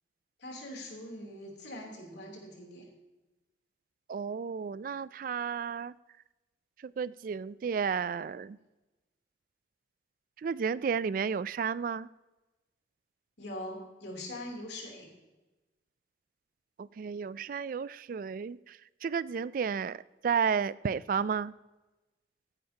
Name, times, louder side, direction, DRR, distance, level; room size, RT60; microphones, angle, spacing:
voice 1, 0.4-2.9 13.4-15.1, left 1 dB, 80° left, 0 dB, 3.2 m, -42 dB
voice 2, 4.1-5.9 6.8-8.6 10.4-12.1 16.8-21.5, right 6 dB, 50° right, 19 dB, 0.3 m, -32 dB
15.0 x 9.9 x 2.9 m, 1.1 s
head